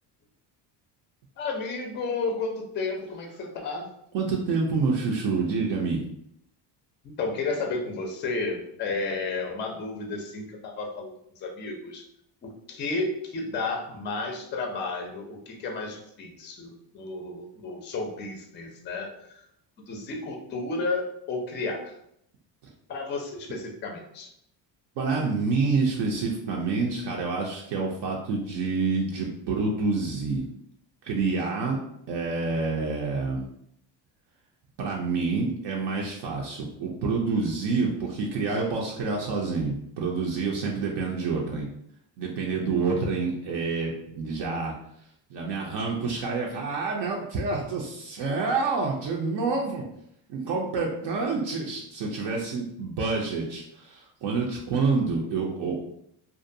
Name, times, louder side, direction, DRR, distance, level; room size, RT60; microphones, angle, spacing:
voice 1, 1.4-3.9 7.2-11.1 11.4-12.0 12.4-19.3 19.9-21.9 22.9-24.3, left 3 dB, 25° left, 2 dB, 0.4 m, -32 dB
voice 2, 4.1-6.0 25.0-30.5 31.0-31.8 32.1-33.5 34.8-41.7 42.2-44.8 45.3-49.8 50.3-55.8, right 4 dB, 65° right, -1 dB, 0.6 m, -28 dB
2.5 x 2.2 x 2.6 m, 0.73 s
cardioid pair, 135°, 44 cm